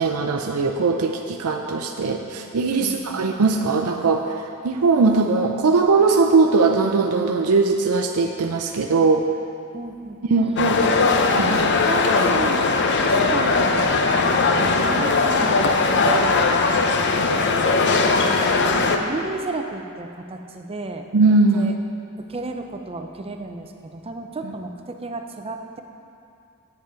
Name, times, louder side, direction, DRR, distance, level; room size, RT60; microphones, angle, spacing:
voice 1, 0.0-9.3 10.3-10.8 11.4-11.8 21.1-21.7, right 4 dB, 80° right, 3 dB, 0.5 m, -20 dB
voice 2, 2.8-3.3 9.7-10.2 11.8-12.7 13.0-16.7 17.0-17.3 18.2-21.1 21.5-21.7 22.2-25.8, right 2 dB, 25° right, 5 dB, 0.6 m, -33 dB
sound 1, 10.6-19.0, left 3 dB, 55° left, 0.6 m, -19 dB
8.3 x 7.9 x 5.1 m, 2.5 s
head